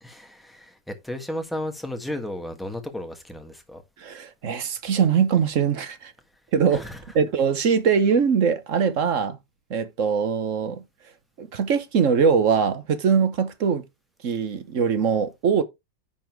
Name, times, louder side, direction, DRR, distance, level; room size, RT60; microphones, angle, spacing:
voice 1, 0.0-3.8 6.7-7.0, left 1 dB, ahead, 1.5 m, -34 dB
voice 2, 4.0-6.1 6.5-6.8 7.1-9.4 9.7-10.8 11.4-13.8 14.2-15.6, right 6 dB, 50° right, 1.2 m, -22 dB
11.0 x 4.3 x 4.5 m
omnidirectional pair, 2.0 m